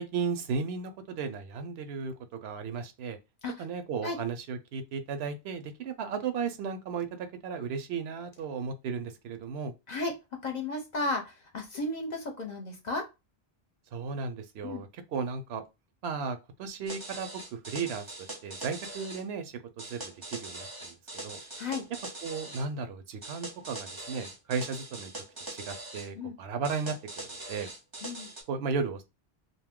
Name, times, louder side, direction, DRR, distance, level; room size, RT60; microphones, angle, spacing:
voice 1, 0.0-3.2 3.6-9.7 13.9-15.6 16.0-18.1 18.4-20.9 21.2-21.4 22.2-25.1 25.5-27.7 28.5-29.0, right 5 dB, 75° right, 0.8 m, -35 dB
voice 2, 10.4-13.1 14.6-14.8 21.6-21.8 26.2-26.4 28.0-28.3, left 2 dB, 50° left, 0.7 m, -34 dB
sound 1, 16.9-19.2 19.8-22.7 23.2-26.1 26.6-28.4, right 2 dB, 25° right, 0.6 m, -42 dB
2.6 x 2.3 x 3.5 m
omnidirectional pair, 1.1 m